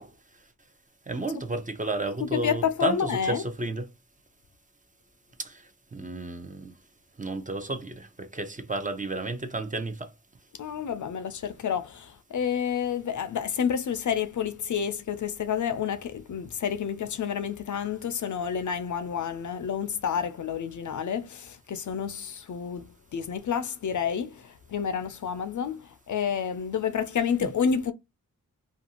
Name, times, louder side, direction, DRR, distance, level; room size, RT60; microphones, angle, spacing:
voice 1, 1.1-3.9 5.4-5.6 5.9-6.7 7.2-10.1 27.4-27.5, right 2 dB, 25° right, 0.5 m, -32 dB
voice 2, 2.2-3.4 10.6-27.9, left 7 dB, 60° left, 0.4 m, -29 dB
2.5 x 2.3 x 2.7 m
wide cardioid pair, 70°, 35 cm